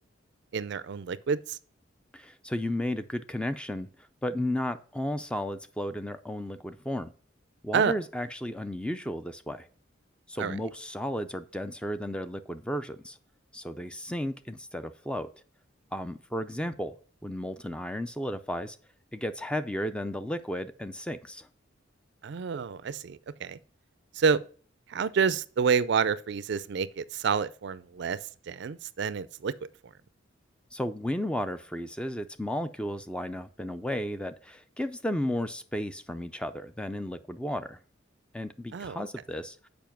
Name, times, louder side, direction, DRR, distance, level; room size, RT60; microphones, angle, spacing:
voice 1, 0.5-1.6 7.7-7.9 10.4-10.6 22.2-23.6 24.2-24.4 24.9-28.2 28.5-29.5 38.7-39.0, right 6 dB, 60° right, 0.4 m, -28 dB
voice 2, 2.1-3.9 4.2-7.1 7.6-9.7 10.3-13.2 13.5-15.3 15.9-17.0 17.2-18.8 19.1-21.5 30.7-37.8 38.3-39.6, left 1 dB, 5° left, 0.4 m, -33 dB
7.0 x 5.2 x 5.8 m
head